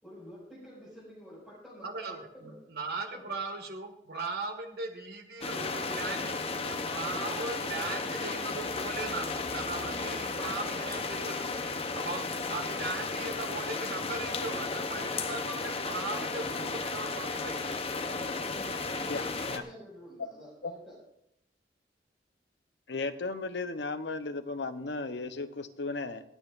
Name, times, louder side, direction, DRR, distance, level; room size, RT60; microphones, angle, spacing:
voice 1, 0.0-2.6 3.0-3.3 17.9-21.0, equal, 5° left, -10 dB, 5.8 m, -49 dB
voice 2, 1.8-11.5 11.9-17.7, right 3 dB, 60° right, 4 dB, 1.9 m, -38 dB
sound 1, 5.4-19.6, left 3 dB, 35° left, 0.9 m, -34 dB
sound 2, 10.0-11.2, right 1 dB, 45° right, 4.9 m, -50 dB
voice 3, 19.1-19.6 20.6-20.7 22.9-26.2, left 3 dB, 85° left, 10 dB, 0.9 m, -35 dB
26.5 x 9.0 x 2.6 m, 0.75 s
head